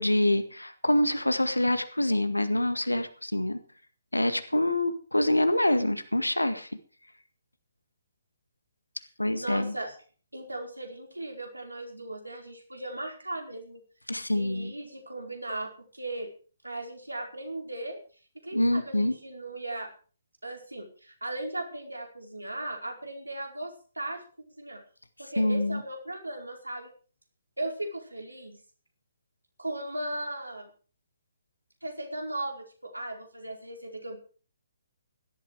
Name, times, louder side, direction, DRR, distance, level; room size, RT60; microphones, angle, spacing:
voice 1, 0.0-3.6 4.1-6.7 9.2-9.7 14.1-14.7 18.5-19.2 25.4-25.8, left 1 dB, 80° left, 10 dB, 1.9 m, -26 dB
voice 2, 9.4-9.9 10.3-13.8 14.3-16.3 16.6-18.0 18.3-19.9 20.4-24.2 24.6-24.8 25.2-26.9 27.6-28.6 29.6-30.7 31.8-34.2, right 1 dB, 80° right, 3 dB, 4.6 m, -37 dB
17.0 x 12.5 x 4.8 m, 0.40 s
figure-of-eight pair, 135°, 0 cm